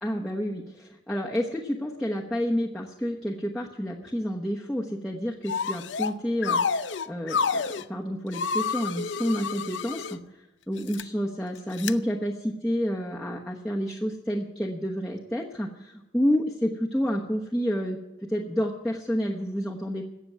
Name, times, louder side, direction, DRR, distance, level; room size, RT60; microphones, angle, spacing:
voice 1, 0.0-10.2 10.7-20.1, equal, 5° left, -4 dB, 1.1 m, -29 dB
sound 1, 5.5-6.1 6.4-7.8 8.3-10.2 10.8-11.0 11.8-11.9, left 5 dB, 80° left, 0.6 m, -29 dB
17.0 x 6.9 x 9.5 m, 1.0 s
head